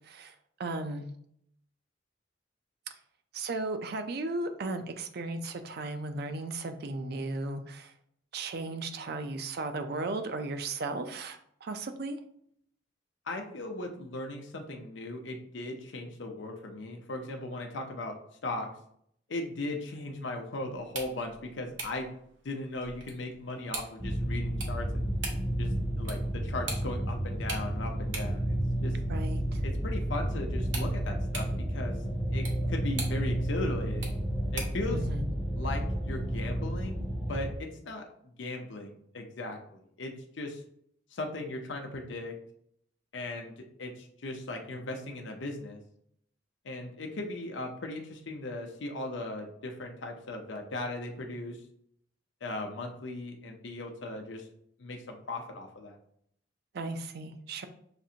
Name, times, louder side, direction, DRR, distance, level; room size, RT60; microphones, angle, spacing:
voice 1, 0.0-0.3 0.6-1.1 2.9-3.0 3.3-7.9 8.3-12.2 29.1-29.6 34.9-35.3 56.7-57.7, right 2 dB, 55° right, 8 dB, 0.4 m, -35 dB
voice 2, 13.3-18.2 18.4-18.7 19.3-22.1 22.4-25.1 25.6-25.7 26.0-29.0 29.6-32.0 32.3-34.2 34.5-35.0 35.5-38.1 38.4-40.6 41.1-42.3 43.1-43.5 43.8-45.8 46.6-51.6 52.4-54.5 54.8-55.9, left 2 dB, 75° left, 2 dB, 0.6 m, -38 dB
sound 1, 20.8-34.9, right 3 dB, 85° right, 1.0 m, -44 dB
sound 2, 24.0-37.5, right 1 dB, 5° right, 0.4 m, -31 dB
5.9 x 2.5 x 2.8 m, 0.68 s
head